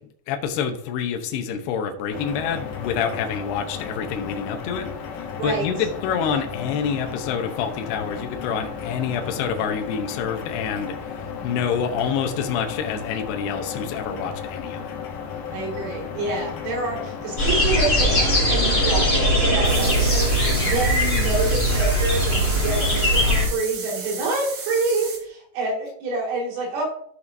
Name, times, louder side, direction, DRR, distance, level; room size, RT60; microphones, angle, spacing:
voice 1, 0.3-4.9 5.2-15.0, left 7 dB, 75° left, 4 dB, 2.7 m, -27 dB
sound 1, 2.1-19.0, left 7 dB, 90° left, 1.8 m, -34 dB
voice 2, 5.4-5.7 15.5-26.8, right 3 dB, 75° right, -2 dB, 4.6 m, -27 dB
sound 2, 17.4-23.5, equal, 15° left, 1.7 m, -20 dB
sound 3, 19.6-25.2, right 5 dB, 55° right, 2.7 m, -34 dB
15.0 x 5.6 x 2.7 m, 0.65 s
omnidirectional pair, 5.4 m